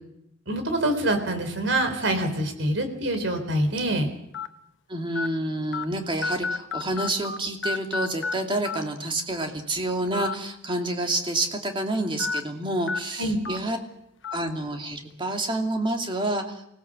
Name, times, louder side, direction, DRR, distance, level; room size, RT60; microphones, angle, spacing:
voice 1, 0.5-4.1 13.2-13.4, right 1 dB, 75° right, 7 dB, 4.0 m, -25 dB
sound 1, 2.2-2.4 3.1-3.2 4.3-4.5 5.2-5.3 5.7-5.8 6.2-7.4 7.6-8.3 8.7-8.8 10.1-10.3 10.7-10.8 12.2-12.4 12.9-13.0 13.5-13.6 14.2-14.4, left 4 dB, 75° left, 1.2 m, -29 dB
voice 2, 4.9-13.8 14.3-16.6, right 1 dB, 25° right, 3 dB, 2.7 m, -28 dB
24.5 x 17.5 x 7.7 m, 0.80 s
head